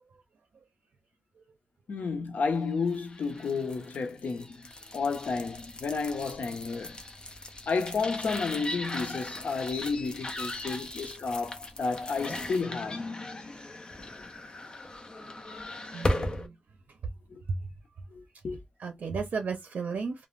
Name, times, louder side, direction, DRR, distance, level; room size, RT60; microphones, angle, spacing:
voice 1, 1.9-4.6 4.9-7.0 7.7-13.0 17.3-17.4 18.1-18.6, left 4 dB, 80° left, 0.6 m, -31 dB
sound 1, 2.8-16.5, left 1 dB, 30° left, 0.5 m, -38 dB
voice 2, 15.9-16.6 17.5-17.7 18.8-20.3, right 5 dB, 80° right, 0.5 m, -34 dB
2.4 x 2.1 x 3.1 m
wide cardioid pair, 165°, 3 cm